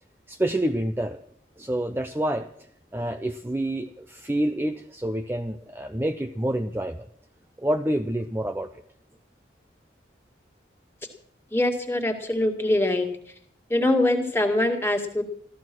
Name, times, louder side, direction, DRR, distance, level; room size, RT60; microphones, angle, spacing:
voice 1, 0.3-1.2 1.6-2.5 2.9-7.0 7.6-8.7, right 1 dB, 10° right, 7 dB, 0.5 m, -27 dB
voice 2, 11.5-13.1 13.7-15.2, left 1 dB, 15° left, 2 dB, 2.0 m, -23 dB
14.5 x 14.0 x 6.1 m, 0.65 s
head